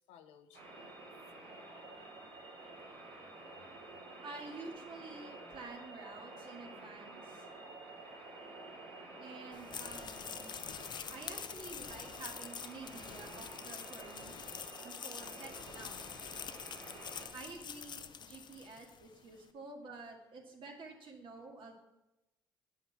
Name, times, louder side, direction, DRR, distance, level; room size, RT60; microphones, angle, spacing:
voice 1, 0.1-1.1 15.2-15.3, left 8 dB, 80° left, 8 dB, 0.7 m, -63 dB
sound 1, 0.5-17.3, right 2 dB, 80° right, 2.7 m, -50 dB
voice 2, 4.2-7.5 9.1-10.8 11.1-14.4 14.8-16.0 17.3-21.8, right 3 dB, 55° right, 1 dB, 2.0 m, -50 dB
sound 2, 9.5-19.1, left 7 dB, 45° left, 0.6 m, -46 dB
7.9 x 5.7 x 6.0 m, 0.94 s
supercardioid pair, 60°, 10 cm